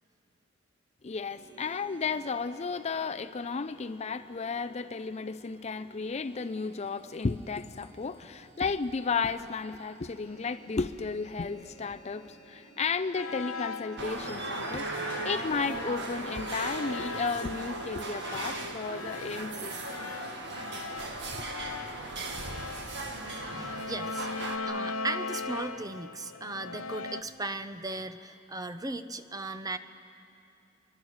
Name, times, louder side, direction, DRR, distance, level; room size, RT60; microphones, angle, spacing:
voice 1, 1.0-14.9 15.2-20.0 21.3-21.4, left 4 dB, 30° left, 10 dB, 0.5 m, -33 dB
sound 1, 1.3-14.2, right 2 dB, 40° right, 4.5 m, -56 dB
sound 2, 13.1-27.2, left 4 dB, 85° left, 0.8 m, -40 dB
sound 3, 14.0-24.6, right 2 dB, 55° right, 1.9 m, -37 dB
voice 2, 23.5-24.3 24.6-29.8, right 2 dB, 15° right, 10 dB, 0.7 m, -37 dB
25.0 x 23.0 x 6.5 m, 2.6 s
head